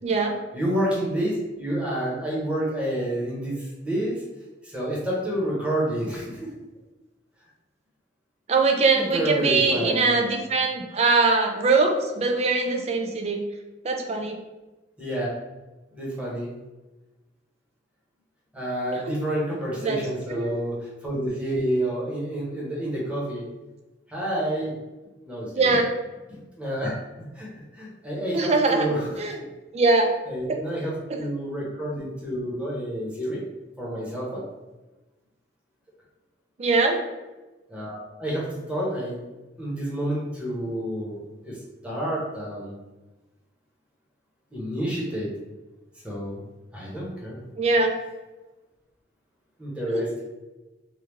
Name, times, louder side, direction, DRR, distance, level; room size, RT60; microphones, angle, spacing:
voice 1, 0.0-0.4 8.5-13.4 13.8-14.4 19.8-20.0 20.3-20.6 25.5-25.9 28.3-28.9 29.2-29.4 29.7-30.1 31.1-31.2 36.6-37.0 47.6-47.9 49.9-50.0, right 3 dB, 35° right, 3 dB, 0.4 m, -22 dB
voice 2, 0.5-4.2 4.6-6.5 8.9-10.1 15.0-15.3 15.9-16.5 18.5-20.8 21.0-23.4 24.1-24.7 25.2-25.8 26.3-26.9 27.3-29.1 30.3-33.4 33.8-34.4 37.7-39.2 39.6-41.6 41.8-42.8 44.5-45.3 46.0-46.4 46.7-47.4 49.6-50.1, right 1 dB, 5° right, -5 dB, 0.9 m, -29 dB
3.4 x 2.3 x 3.1 m, 1.1 s
head